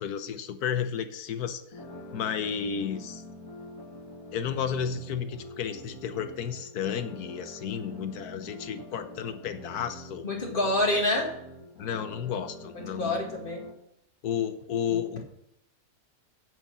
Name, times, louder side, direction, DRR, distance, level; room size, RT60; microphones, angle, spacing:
voice 1, 0.0-1.6 2.1-3.2 4.3-10.2 11.8-13.2 14.2-15.2, left 8 dB, 75° left, 11 dB, 1.3 m, -32 dB
sound 1, 1.7-13.7, left 1 dB, 55° left, 2.5 m, -45 dB
voice 2, 10.2-11.3 12.9-13.6 14.9-15.0, left 1 dB, 35° left, 1 dB, 2.0 m, -27 dB
9.1 x 6.5 x 6.2 m, 0.80 s
omnidirectional pair, 1.7 m